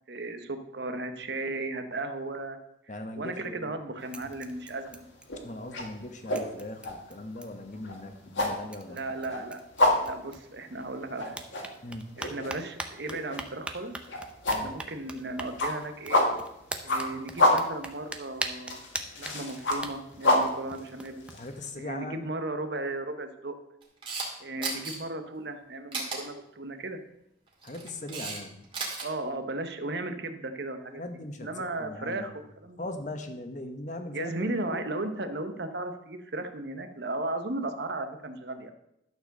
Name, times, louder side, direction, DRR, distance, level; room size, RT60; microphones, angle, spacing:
voice 1, 0.1-2.6 3.2-5.0 8.9-9.6 10.0-11.4 12.2-13.9 14.5-16.2 16.8-18.8 19.2-21.2 21.7-23.6 24.4-27.0 29.0-31.0 31.4-32.8 34.1-38.7, right 2 dB, 60° right, 8 dB, 0.9 m, -35 dB
voice 2, 2.9-3.8 5.4-9.1 11.8-12.1 14.5-14.7 21.3-22.3 24.6-24.7 27.6-28.6 31.0-32.3 32.8-34.4 34.7-34.9, left 1 dB, 40° left, 6 dB, 1.1 m, -39 dB
sound 1, 3.2-3.8 4.1-5.7 5.9-6.0 6.4-7.7 8.4-8.5 8.7-10.9 11.3-21.4, right 2 dB, 5° right, 0.6 m, -42 dB
sound 2, 4.1-4.4 4.8-21.7, left 1 dB, 80° left, 2.0 m, -28 dB
Camera, 23.8-24.3 24.6-24.9 25.9-26.2 27.5-28.4 28.6-29.0, right 4 dB, 25° right, 2.3 m, -34 dB
12.0 x 4.6 x 6.6 m, 0.81 s
head